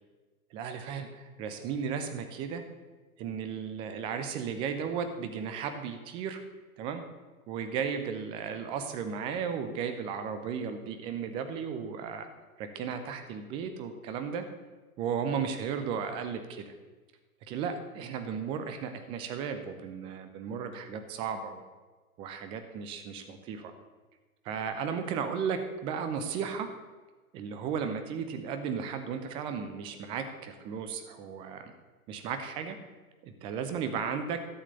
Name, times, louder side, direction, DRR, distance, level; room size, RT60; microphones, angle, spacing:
voice 1, 0.5-2.6 3.2-6.4 6.8-7.0 7.5-12.3 12.6-14.5 15.0-16.7 17.5-21.6 22.2-23.7 24.4-26.7 27.3-31.7 32.1-32.8 33.2-34.4, right 6 dB, 10° right, 8 dB, 0.6 m, -35 dB
12.5 x 7.4 x 6.7 m, 1.3 s
figure-of-eight pair, 125°, 45 cm